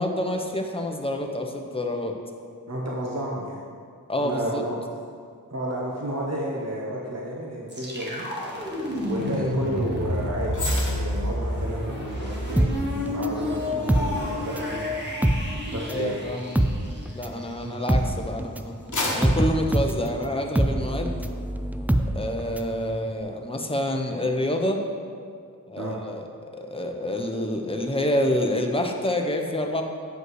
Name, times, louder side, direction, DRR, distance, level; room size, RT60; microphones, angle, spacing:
voice 1, 0.0-2.2 4.1-4.6 9.3-9.5 15.9-16.5 17.1-18.8 19.1-21.2 22.1-24.9 25.7-26.2 26.5-29.8, left 1 dB, 15° left, 3 dB, 0.8 m, -27 dB
voice 2, 2.7-3.6 4.2-4.7 5.5-8.3 9.0-12.7 13.1-14.9 15.7-16.2 17.6-17.8 25.8-26.0, right 1 dB, 45° right, -3 dB, 1.1 m, -31 dB
sound 1, 7.7-17.5, left 1 dB, 30° right, 1.7 m, -30 dB
sound 2, 10.5-17.9 18.4-20.7 21.1-21.3, left 2 dB, 55° left, 1.2 m, -36 dB
sound 3, 12.6-14.8 15.1-22.8 23.1-23.2, right 1 dB, 5° right, 0.3 m, -25 dB
7.9 x 5.4 x 4.8 m, 2.2 s
wide cardioid pair, 55°, 36 cm